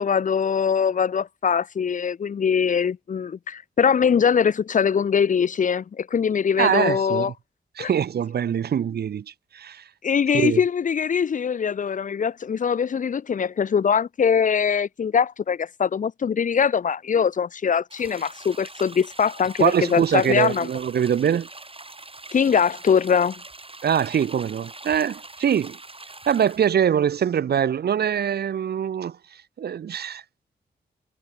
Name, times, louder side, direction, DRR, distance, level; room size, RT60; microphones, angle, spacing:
voice 1, 0.0-7.3 7.8-7.9 10.0-20.7 22.3-23.4, left 7 dB, 45° left, 0.4 m, -22 dB
voice 2, 6.6-7.3 7.8-9.2 9.5-9.8 10.3-10.6 19.6-21.5 23.8-25.8 26.3-29.2 29.6-30.2, right 8 dB, 60° right, 0.5 m, -23 dB
sound 1, 17.9-26.7, right 2 dB, 30° right, 4.9 m, -43 dB
cardioid pair, 45°, 18 cm